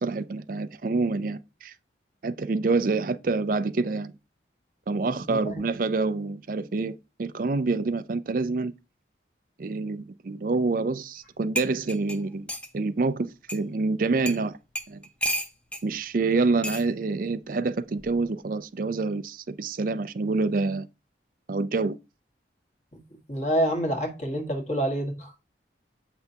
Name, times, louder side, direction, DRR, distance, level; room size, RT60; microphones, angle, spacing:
voice 1, 0.0-1.7 2.2-4.1 4.9-8.7 9.6-14.6 14.9-15.0 15.8-20.9 21.5-22.0, right 3 dB, 45° right, 0.4 m, -27 dB
sound 1, 11.2-11.3 11.5-12.7 13.5-13.6 14.2-14.4 14.7-15.8 16.6-16.9 18.0-18.2, equal, 5° left, 0.6 m, -32 dB
voice 2, 23.3-25.3, equal, 40° left, 1.6 m, -27 dB
7.8 x 5.8 x 2.8 m
head